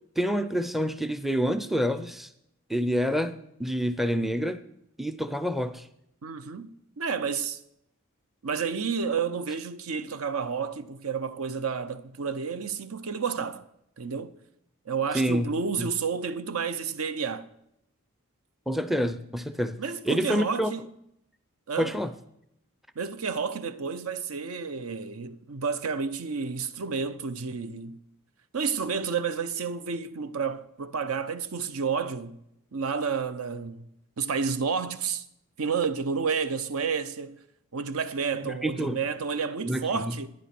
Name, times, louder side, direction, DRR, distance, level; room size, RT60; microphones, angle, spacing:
voice 1, 0.2-2.3 2.7-4.6 5.0-5.9 15.1-15.5 15.8-15.9 18.7-19.8 20.1-20.7 21.8-22.1 38.6-39.0 39.6-40.0, equal, ahead, 0.4 m, -27 dB
voice 2, 6.2-7.6 8.4-13.6 14.0-14.4 14.9-17.5 19.8-20.9 21.7-21.9 23.0-28.0 28.5-32.4 32.7-33.8 34.2-35.2 35.6-37.4 37.7-40.3, right 5 dB, 75° right, 0.7 m, -30 dB
11.0 x 10.0 x 5.9 m
head